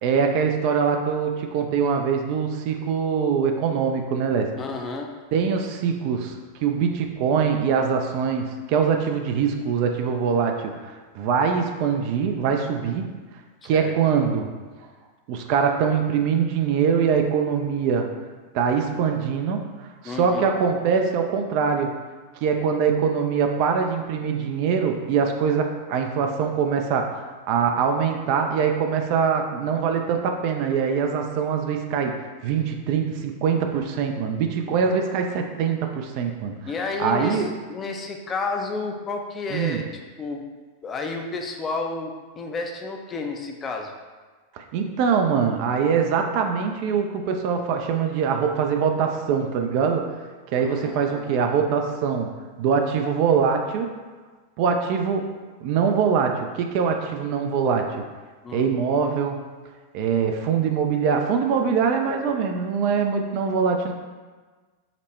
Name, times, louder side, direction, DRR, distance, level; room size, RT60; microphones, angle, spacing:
voice 1, 0.0-4.5 5.3-13.1 13.6-14.5 15.3-18.1 18.5-21.9 22.4-36.6 37.0-37.5 39.5-39.8 44.5-50.1 50.5-52.3 52.6-54.0 54.6-55.3 55.6-58.0 58.5-59.4 59.9-63.9, right 6 dB, 45° right, 4 dB, 0.3 m, -23 dB
voice 2, 4.6-5.1 13.6-13.9 20.0-20.5 34.7-35.0 36.6-39.9 40.2-40.4 40.8-43.9 50.6-51.4 58.4-58.7, left 3 dB, 25° left, 2 dB, 0.4 m, -31 dB
5.0 x 2.1 x 3.1 m, 1.4 s
figure-of-eight pair, 90°, 0 cm